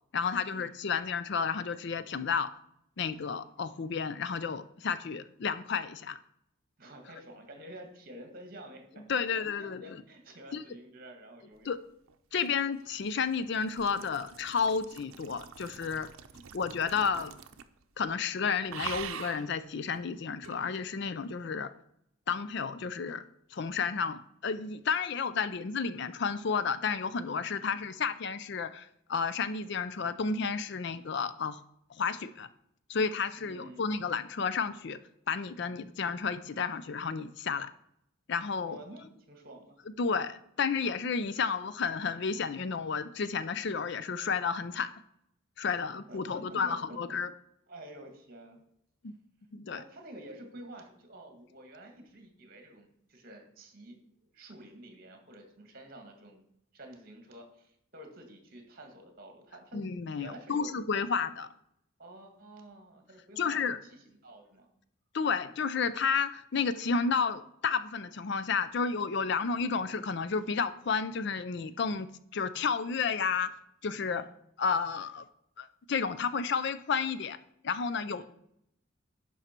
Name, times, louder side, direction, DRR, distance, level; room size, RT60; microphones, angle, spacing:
voice 1, 0.1-2.5 3.0-6.2 9.1-10.0 10.5-10.6 11.7-11.8 12.3-16.1 16.5-17.4 18.0-21.7 22.3-23.2 23.5-31.6 32.0-32.5 32.9-35.0 35.3-37.7 38.3-38.8 40.0-44.9 45.6-47.3 49.0-49.1 49.5-49.8 59.7-61.5 63.4-63.8 65.1-73.5 73.8-74.3 74.6-75.2 75.6-77.4 77.6-78.2, left 5 dB, 55° left, 14 dB, 0.4 m, -31 dB
voice 2, 6.8-11.7 16.3-16.6 27.6-27.8 33.3-33.9 38.6-39.8 45.6-45.8 46.1-47.0 47.7-48.6 49.7-56.4 56.7-60.7 62.0-64.7 74.0-74.3 78.1-78.2, right 1 dB, 45° right, 4 dB, 1.8 m, -50 dB
sound 1, 12.1-17.8 18.1-18.3 18.7-19.5 20.4-20.6, right 7 dB, 85° right, 0.6 m, -44 dB
11.0 x 5.5 x 4.4 m, 0.75 s
head